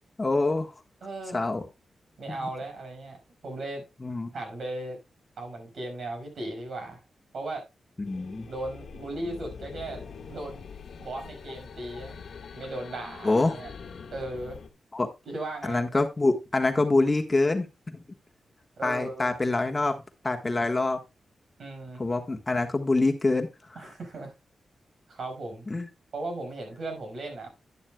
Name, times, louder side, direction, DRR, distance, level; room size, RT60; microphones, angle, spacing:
voice 1, 0.2-0.7 1.3-1.6 2.3-2.5 4.0-4.3 8.0-8.5 13.2-13.6 14.9-15.1 15.6-17.7 17.9-18.0 18.8-20.0 20.2-21.0 22.0-23.5 25.7-25.9, left 2 dB, 25° left, 1.4 m, -25 dB
voice 2, 1.0-1.5 2.2-3.8 4.3-5.0 5.4-7.0 7.3-7.7 8.5-10.7 11.0-12.2 12.5-13.7 14.1-14.6 15.3-15.8 18.8-19.3 21.6-22.0 23.8-24.3 25.1-25.7 26.1-27.5, right 2 dB, 70° right, 5.5 m, -37 dB
sound 1, 8.0-14.7, left 6 dB, 70° left, 1.3 m, -44 dB
11.0 x 10.5 x 2.3 m
wide cardioid pair, 105°, 0 cm